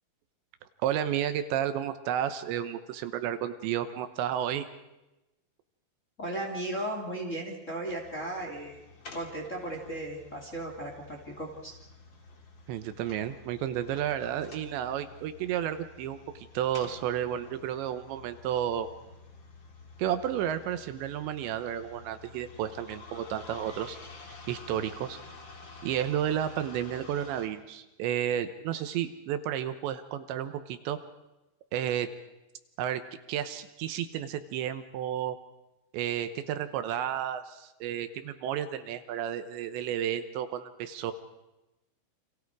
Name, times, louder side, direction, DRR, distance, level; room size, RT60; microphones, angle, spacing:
voice 1, 0.8-4.7 12.7-18.9 20.0-24.0 24.3-25.2 25.8-31.0 31.7-32.1 32.8-33.0 33.3-35.4 35.9-41.1, right 10 dB, 75° right, 10 dB, 3.1 m, -32 dB
voice 2, 6.2-8.8 9.1-11.8, right 1 dB, 20° left, 0 dB, 2.6 m, -36 dB
sound 1, 7.9-27.5, left 3 dB, 35° left, 2.2 m, -50 dB
30.0 x 27.0 x 4.8 m, 0.99 s
omnidirectional pair, 5.4 m